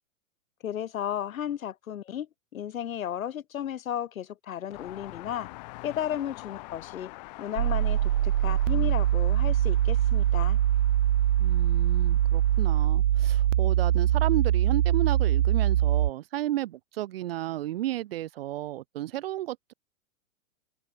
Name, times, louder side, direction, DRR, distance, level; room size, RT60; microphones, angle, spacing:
voice 1, 0.6-5.5 5.8-7.1 7.4-10.6, left 10 dB, 70° left, 3.8 m, -34 dB
sound 1, 4.7-12.9, left 24 dB, 30° left, 3.7 m, -47 dB
sound 2, 7.6-16.1, right 12 dB, 60° right, 1.5 m, -23 dB
voice 2, 11.4-19.7, right 14 dB, 45° right, 2.4 m, -33 dB
hypercardioid pair, 175°, 42 cm